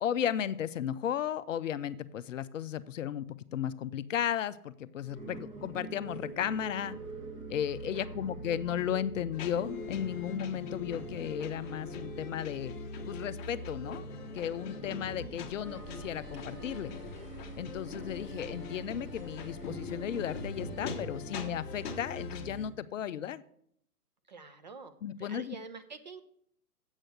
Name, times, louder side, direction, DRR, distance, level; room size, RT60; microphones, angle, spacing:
voice 1, 0.0-7.0 7.5-12.7 13.0-14.0 14.3-16.9 17.6-23.4 25.0-25.6, left 9 dB, 55° left, 15 dB, 0.6 m, -35 dB
sound 1, 5.0-22.7, right 1 dB, 15° right, 1.3 m, -43 dB
sound 2, 9.3-22.5, left 6 dB, 30° left, 1.1 m, -44 dB
voice 2, 24.3-24.9 25.2-26.2, right 4 dB, 30° right, 9 dB, 0.4 m, -46 dB
8.1 x 6.4 x 6.3 m, 0.68 s
figure-of-eight pair, 130°, 46 cm